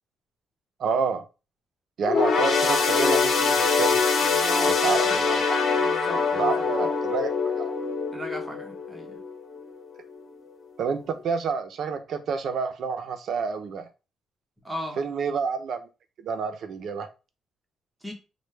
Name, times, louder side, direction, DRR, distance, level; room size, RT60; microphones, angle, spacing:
voice 1, 0.8-1.2 2.0-4.0 4.7-5.7 6.3-7.7 10.8-13.9 15.0-15.9 16.2-17.1, right 5 dB, 65° right, 9 dB, 0.5 m, -29 dB
sound 1, 2.0-9.7 10.1-10.3 11.2-11.3, left 5 dB, 75° left, 0.9 m, -24 dB
voice 2, 4.2-5.2 5.7-6.9 8.1-9.2 14.6-15.0 18.0-18.1, equal, 10° right, 2 dB, 0.9 m, -37 dB
3.2 x 2.1 x 3.2 m, 0.31 s
cardioid pair, 115°, 0 cm